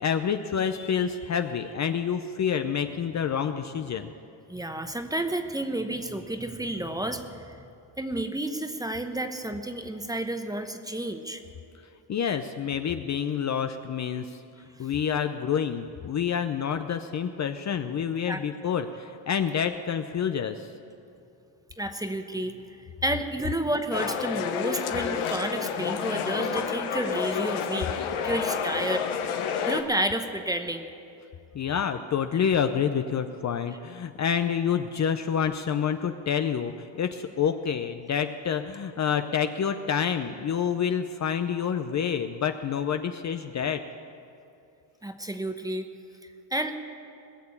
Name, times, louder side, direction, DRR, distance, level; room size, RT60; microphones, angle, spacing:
voice 1, 0.0-4.1 12.1-14.2 14.8-20.7 31.5-43.8, left 7 dB, 35° left, 8 dB, 0.6 m, -28 dB
voice 2, 4.5-7.6 8.0-11.4 14.7-14.9 18.3-18.4 21.8-22.5 23.0-27.9 28.2-29.1 29.7-30.9 45.0-45.9 46.5-46.8, right 1 dB, 10° right, 7 dB, 0.9 m, -31 dB
sound 1, 23.9-29.8, left 7 dB, 80° left, 1.3 m, -29 dB
20.0 x 6.8 x 8.5 m, 2.6 s
cardioid pair, 100°, 48 cm